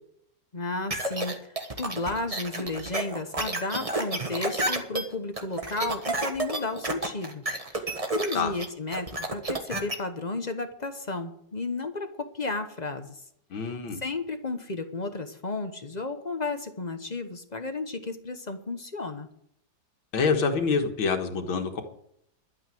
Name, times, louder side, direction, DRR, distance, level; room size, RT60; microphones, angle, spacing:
voice 1, 0.5-13.2 13.6-19.3, left 3 dB, 30° left, 7 dB, 0.8 m, -33 dB
sound 1, 0.9-9.9, right 2 dB, 20° right, 1.2 m, -30 dB
voice 2, 13.5-14.0 20.1-21.8, left 5 dB, 85° left, 5 dB, 2.3 m, -26 dB
12.0 x 9.1 x 7.7 m, 0.72 s
omnidirectional pair, 2.1 m